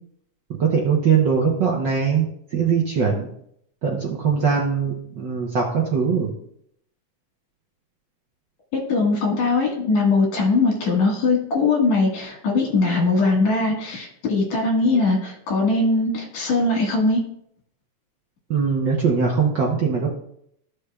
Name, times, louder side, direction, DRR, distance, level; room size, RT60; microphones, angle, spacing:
voice 1, 0.5-2.3 2.5-3.3 3.8-6.3 18.5-20.1, right 6 dB, 70° right, -2 dB, 1.0 m, -21 dB
voice 2, 8.7-17.2, left 3 dB, 70° left, 0 dB, 3.0 m, -20 dB
13.5 x 6.6 x 2.3 m, 0.71 s
omnidirectional pair, 3.3 m